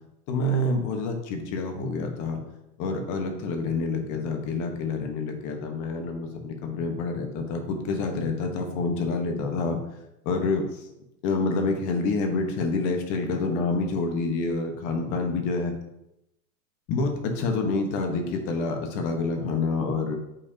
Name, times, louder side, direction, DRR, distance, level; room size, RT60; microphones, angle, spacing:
voice 1, 0.3-2.4 2.8-9.8 10.2-10.9 11.2-15.7 16.9-20.2, left 3 dB, 40° left, 4 dB, 1.2 m, -27 dB
8.7 x 4.6 x 2.8 m, 0.87 s
supercardioid pair, 140°, 47 cm